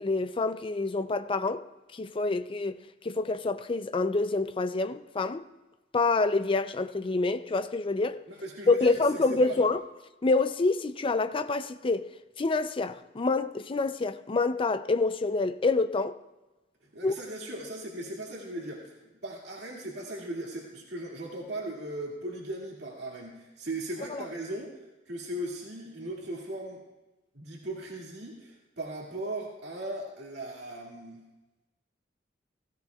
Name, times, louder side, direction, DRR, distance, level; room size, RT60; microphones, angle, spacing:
voice 1, 0.0-1.7 1.9-2.8 3.0-5.4 5.9-8.2 8.7-9.8 10.2-12.1 12.4-16.2 17.0-17.1 24.1-24.2, left 3 dB, 30° left, 0.5 m, -27 dB
voice 2, 8.3-9.6 16.8-26.8 27.3-31.2, right 1 dB, 65° right, 2.3 m, -38 dB
16.5 x 16.0 x 2.4 m
head